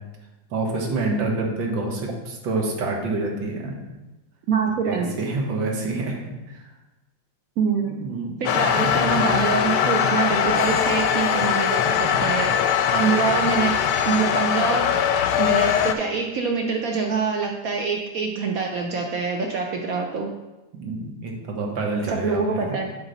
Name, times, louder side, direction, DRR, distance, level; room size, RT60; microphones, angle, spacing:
voice 1, 0.5-3.8 4.8-6.2 6.5-6.7 8.0-8.4 8.8-9.0 12.0-12.2 13.3-13.4 20.7-22.6, right 3 dB, 85° right, 1 dB, 1.9 m, -27 dB
voice 2, 4.5-5.1 7.6-8.0 8.4-20.3 22.1-22.9, right 5 dB, 65° right, 2 dB, 0.9 m, -25 dB
sound 1, 8.5-16.0, left 8 dB, 75° left, 1.1 m, -21 dB
8.0 x 5.2 x 4.0 m, 1.1 s
omnidirectional pair, 2.0 m